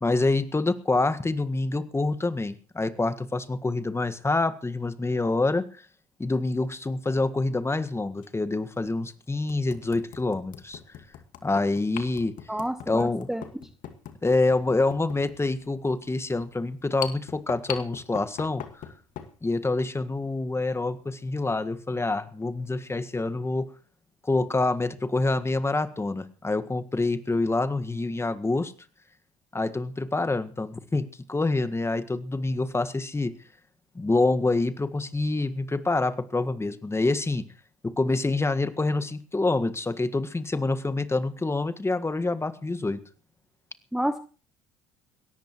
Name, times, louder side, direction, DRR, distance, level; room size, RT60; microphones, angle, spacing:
voice 1, 0.0-5.8 6.2-10.8 11.4-12.3 12.9-13.3 14.2-18.6 19.4-23.7 24.2-28.7 29.5-33.3 33.9-37.4 37.8-43.0, left 2 dB, 15° left, 12 dB, 1.7 m, -26 dB
sound 1, 6.5-6.7 8.2-8.3 8.9-9.0 9.5-19.4, left 10 dB, 55° left, 2.2 m, -41 dB
voice 2, 12.5-13.4 43.9-44.2, right 1 dB, 5° right, 11 dB, 1.1 m, -29 dB
21.5 x 17.5 x 3.1 m, 0.38 s
figure-of-eight pair, 55°, 16 cm